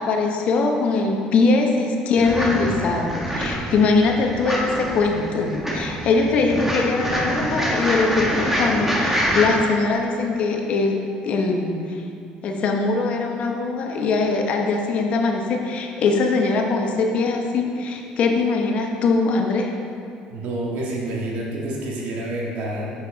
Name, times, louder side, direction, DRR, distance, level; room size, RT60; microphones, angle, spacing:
voice 1, 0.0-11.0 11.2-12.0 12.4-19.7, left 3 dB, 55° left, 2 dB, 0.9 m, -21 dB
sound 1, 2.2-9.5, equal, 10° right, 1.3 m, -25 dB
voice 2, 20.3-22.9, right 1 dB, 75° right, -3 dB, 1.7 m, -28 dB
7.2 x 6.6 x 3.9 m, 2.5 s
cardioid pair, 125°, 3 cm